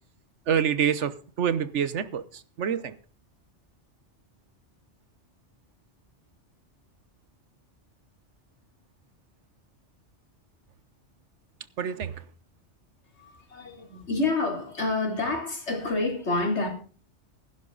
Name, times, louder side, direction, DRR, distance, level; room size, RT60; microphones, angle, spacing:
voice 1, 0.5-3.0 11.8-12.2, right 8 dB, 80° right, 1.3 m, -27 dB
voice 2, 13.1-16.7, left 3 dB, 70° left, 3.7 m, -28 dB
16.0 x 11.0 x 4.0 m
omnidirectional pair, 1.2 m